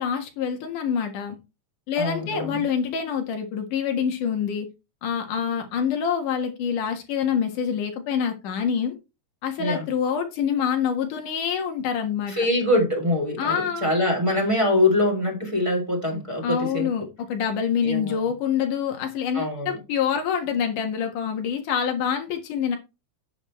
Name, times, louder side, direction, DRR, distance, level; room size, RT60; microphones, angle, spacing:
voice 1, 0.0-1.4 1.9-4.7 5.0-9.0 9.4-12.3 13.4-13.9 16.4-22.8, left 7 dB, 85° left, 3.2 m, -26 dB
voice 2, 2.0-2.6 9.6-9.9 12.3-16.9 17.8-18.3 19.3-19.8, left 1 dB, 10° right, 3.0 m, -24 dB
10.5 x 8.2 x 3.2 m
omnidirectional pair, 3.5 m